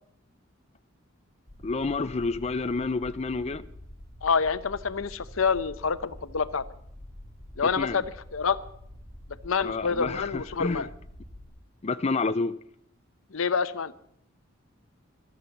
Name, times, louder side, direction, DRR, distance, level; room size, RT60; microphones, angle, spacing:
sound 1, 1.5-11.5, left 1 dB, 15° right, 4.0 m, -47 dB
voice 1, 1.6-3.6 7.7-8.0 9.6-10.9 11.8-12.6, left 3 dB, 30° left, 0.5 m, -29 dB
voice 2, 4.2-6.6 7.6-8.1 8.3-8.6 9.4-10.9 13.3-13.9, left 5 dB, 85° left, 0.8 m, -27 dB
14.5 x 12.5 x 7.1 m
head